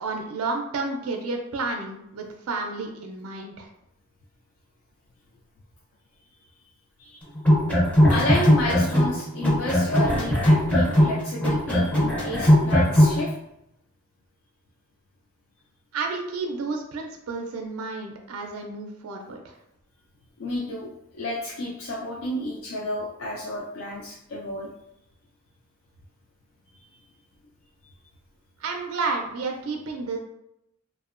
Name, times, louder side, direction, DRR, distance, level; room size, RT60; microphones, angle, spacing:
voice 1, 0.0-3.7 15.9-19.5 28.6-30.2, right 3 dB, 75° right, 2 dB, 0.4 m, -31 dB
sound 1, 7.4-9.2 9.4-13.2, equal, 5° left, 0.4 m, -19 dB
voice 2, 8.1-13.3 20.4-24.7 26.7-27.1, left 1 dB, 65° left, -4 dB, 0.4 m, -31 dB
2.7 x 2.0 x 2.4 m, 0.81 s
head